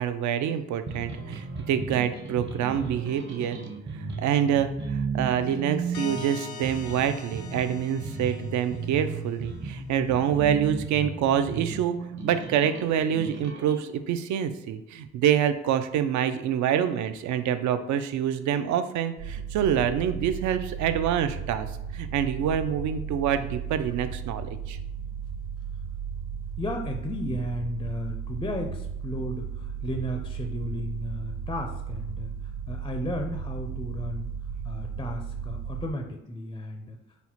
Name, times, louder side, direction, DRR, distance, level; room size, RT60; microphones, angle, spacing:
voice 1, 0.0-3.6 3.9-21.7 21.9-24.8, right 9 dB, 70° right, 10 dB, 0.4 m, -26 dB
sound 1, 0.9-13.8, right 4 dB, 40° right, 0.8 m, -35 dB
sound 2, 5.9-9.4, left 5 dB, 70° left, 0.6 m, -43 dB
sound 3, 19.2-35.9, right 7 dB, 90° right, 1.3 m, -35 dB
voice 2, 26.6-32.3 32.7-34.3 34.6-37.0, left 1 dB, 15° left, 4 dB, 0.4 m, -34 dB
4.2 x 2.1 x 4.3 m, 0.89 s
cardioid pair, 90°, 30 cm